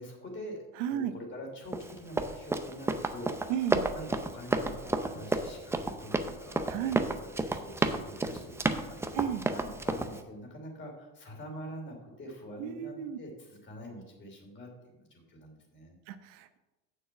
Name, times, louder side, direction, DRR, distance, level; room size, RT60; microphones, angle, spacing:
voice 1, 0.0-3.7 3.9-9.2 9.5-14.7 14.9-16.0, equal, 30° left, 2 dB, 3.0 m, -45 dB
voice 2, 0.8-1.1 3.5-3.9 6.7-7.0 9.1-9.4 12.6-13.2 16.1-16.6, right 10 dB, 85° right, 10 dB, 0.9 m, -33 dB
Run, 1.7-10.2, right 2 dB, 5° right, 0.5 m, -31 dB
7.2 x 6.6 x 7.1 m, 1.1 s
cardioid pair, 130°, 36 cm